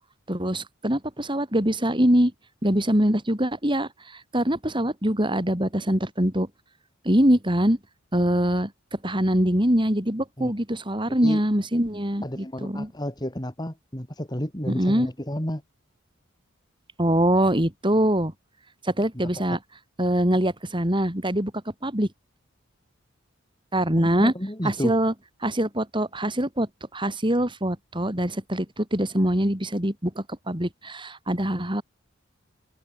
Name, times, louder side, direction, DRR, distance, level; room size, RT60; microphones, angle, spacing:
voice 1, 0.3-2.3 2.6-6.5 7.1-7.8 8.1-12.9 14.7-15.1 17.0-18.3 18.8-19.6 20.0-21.5 21.8-22.1 23.7-24.3 24.6-25.1 25.4-31.8, right 1 dB, 25° right, 5.2 m, -23 dB
voice 2, 12.2-15.6 24.0-25.0, equal, 20° left, 3.8 m, -31 dB
head